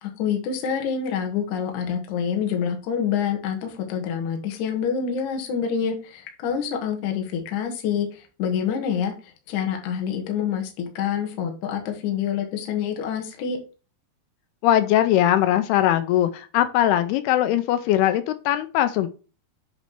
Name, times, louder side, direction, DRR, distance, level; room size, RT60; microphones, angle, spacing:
voice 1, 0.0-13.6, left 7 dB, 60° left, 3 dB, 2.2 m, -27 dB
voice 2, 14.6-19.1, left 12 dB, 80° left, 10 dB, 2.4 m, -20 dB
8.2 x 3.2 x 5.7 m, 0.35 s
omnidirectional pair, 4.9 m